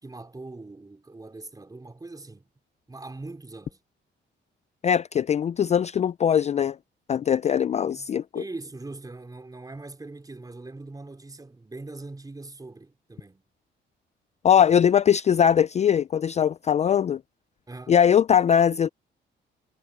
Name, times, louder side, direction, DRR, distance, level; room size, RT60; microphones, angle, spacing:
voice 1, 0.0-2.5 2.9-3.8 7.9-13.4 17.7-18.0, right 2 dB, 20° right, 4.3 m, -41 dB
voice 2, 4.8-6.8 7.1-8.4 14.4-17.2 17.9-18.9, left 8 dB, 35° left, 0.4 m, -21 dB
cardioid pair, 90°, 20 cm